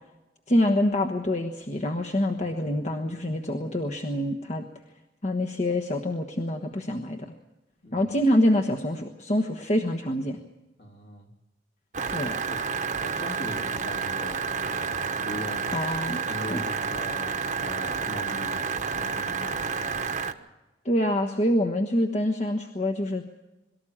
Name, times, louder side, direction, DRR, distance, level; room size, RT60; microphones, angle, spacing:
voice 1, 0.5-4.6 5.2-7.3 7.9-10.4 12.1-12.4 15.7-16.2 16.5-16.6 20.8-23.2, left 1 dB, 40° left, 2 dB, 1.2 m, -26 dB
voice 2, 7.8-8.1 10.8-11.3 12.2-12.6 13.0-15.6 16.3-19.8, equal, 60° left, 1 dB, 3.3 m, -40 dB
sound 1, 11.9-20.3, right 5 dB, 45° right, 1.1 m, -30 dB
23.0 x 13.5 x 8.7 m, 1.0 s
head